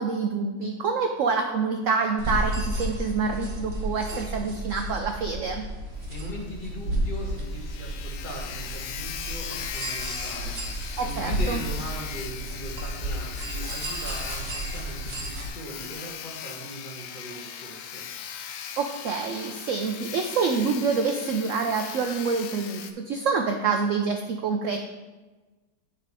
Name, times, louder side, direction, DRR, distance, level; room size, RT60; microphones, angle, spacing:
voice 1, 0.0-5.6 11.0-11.6 18.8-24.8, right 5 dB, 75° right, 4 dB, 0.7 m, -27 dB
sound 1, 2.2-15.5, right 1 dB, 45° right, 1.1 m, -32 dB
Sawing, 6.0-6.1 6.4-6.5 6.9-7.0 7.2-22.9, left 8 dB, 85° left, 0.7 m, -39 dB
voice 2, 6.1-18.0, equal, 30° left, -2 dB, 1.3 m, -39 dB
9.7 x 3.8 x 4.8 m, 1.2 s
omnidirectional pair, 2.0 m